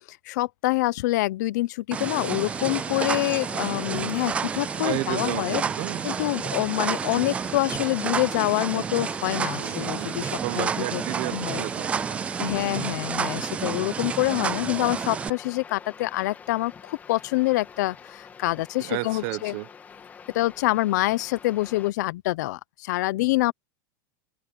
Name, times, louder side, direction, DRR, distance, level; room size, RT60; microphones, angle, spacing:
voice 1, 0.1-5.6 6.0-11.0 11.3-11.6 12.4-19.5 20.3-23.5, left 18 dB, 65° left, 0.8 m, -26 dB
sound 1, 1.9-21.9, left 6 dB, 15° left, 2.7 m, -46 dB
sound 2, 1.9-15.3, right 6 dB, 10° right, 0.3 m, -30 dB
voice 2, 4.8-6.0 9.6-10.2 10.4-12.7 18.8-19.7, right 22 dB, 45° right, 0.9 m, -33 dB
supercardioid pair, 165°, 10 cm